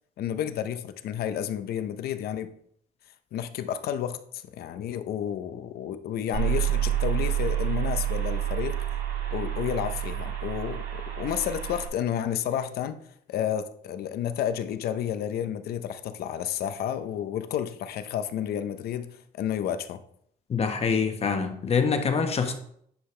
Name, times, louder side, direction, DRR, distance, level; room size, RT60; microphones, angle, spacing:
voice 1, 0.2-2.5 3.3-8.8 9.3-13.0 13.3-19.1 19.3-20.0, left 10 dB, 65° left, 10 dB, 0.8 m, -31 dB
sound 1, 6.3-11.9, right 11 dB, 65° right, 2.0 m, -28 dB
voice 2, 20.5-22.5, left 5 dB, 35° left, 5 dB, 1.2 m, -25 dB
10.0 x 5.6 x 3.3 m, 0.68 s
cardioid pair, 110°, 17 cm